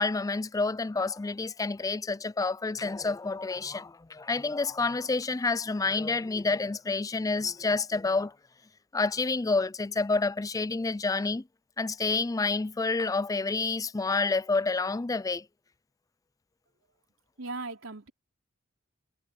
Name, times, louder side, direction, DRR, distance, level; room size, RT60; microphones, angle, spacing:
voice 1, 0.0-8.3 8.9-11.4 11.8-15.4, left 3 dB, 15° left, 0.4 m, -29 dB
voice 2, 17.4-18.1, right 3 dB, 80° right, 3.6 m, -37 dB
head